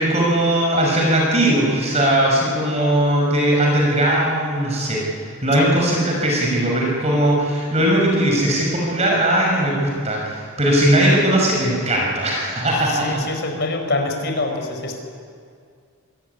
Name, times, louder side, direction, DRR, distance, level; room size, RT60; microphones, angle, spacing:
voice 1, 0.0-13.2, right 1 dB, 30° right, -2 dB, 6.1 m, -19 dB
voice 2, 12.9-15.0, left 2 dB, 50° left, 4 dB, 4.8 m, -25 dB
26.0 x 19.0 x 9.9 m, 2.2 s
head